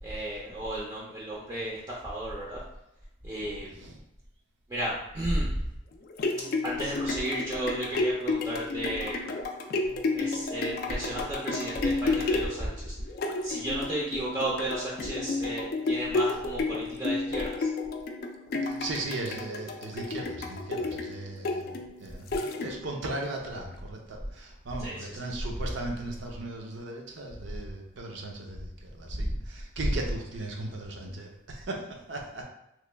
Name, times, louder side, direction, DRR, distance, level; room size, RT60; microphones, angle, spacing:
voice 1, 0.0-2.6 3.2-3.7 4.7-5.5 6.6-9.1 10.1-12.9 13.4-17.7 24.8-25.4 29.1-29.4 29.8-30.0, right 1 dB, 20° right, -6 dB, 0.5 m, -33 dB
voice 2, 3.7-4.0 18.7-32.4, right 2 dB, 70° right, 0 dB, 0.6 m, -37 dB
sound 1, 5.9-23.0 23.6-23.7, left 3 dB, 50° left, 0.3 m, -32 dB
3.0 x 2.2 x 3.2 m, 0.85 s
head